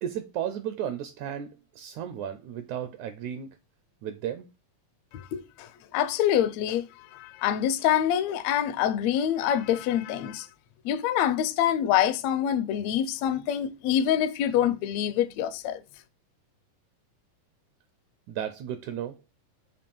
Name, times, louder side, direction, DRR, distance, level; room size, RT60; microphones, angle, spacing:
voice 1, 0.0-3.5 4.0-4.5 18.3-19.2, right 9 dB, 75° right, 1.8 m, -34 dB
voice 2, 5.1-10.5 10.8-15.8, left 10 dB, 80° left, 1.5 m, -26 dB
6.9 x 2.9 x 5.4 m
omnidirectional pair, 3.9 m